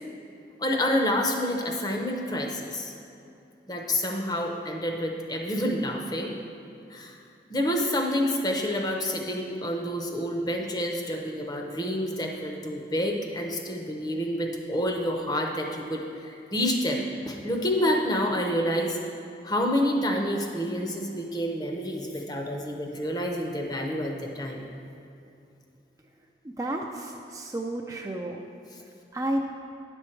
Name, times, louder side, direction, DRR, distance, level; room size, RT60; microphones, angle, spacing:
voice 1, 0.6-2.9 3.7-6.3 6.9-7.2 7.5-19.0 19.4-24.6, equal, 20° left, 1 dB, 0.7 m, -28 dB
voice 2, 26.4-28.4 29.1-29.4, right 1 dB, 20° right, 1 dB, 0.4 m, -31 dB
9.8 x 6.3 x 4.4 m, 2.6 s
head